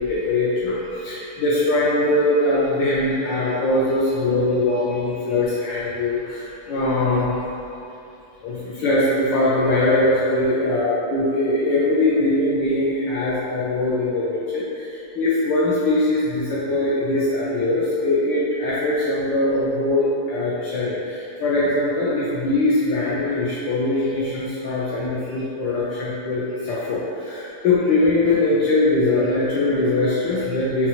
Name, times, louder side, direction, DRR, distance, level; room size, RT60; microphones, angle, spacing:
voice 1, 0.0-7.3 8.4-30.9, left 2 dB, 75° left, -7 dB, 1.0 m, -21 dB
5.6 x 2.4 x 2.8 m, 2.7 s
omnidirectional pair, 2.4 m